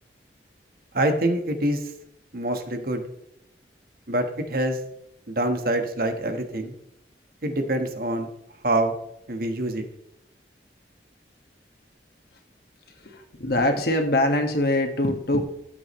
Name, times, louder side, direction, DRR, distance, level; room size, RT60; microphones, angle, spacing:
voice 1, 0.9-1.9 2.3-3.0 4.1-4.8 5.3-6.7 7.4-8.3 8.6-8.9 9.3-9.8, right 1 dB, 55° right, 6 dB, 1.3 m, -25 dB
voice 2, 13.0-15.4, left 1 dB, 60° left, 4 dB, 1.7 m, -23 dB
14.0 x 8.4 x 3.1 m, 0.78 s
head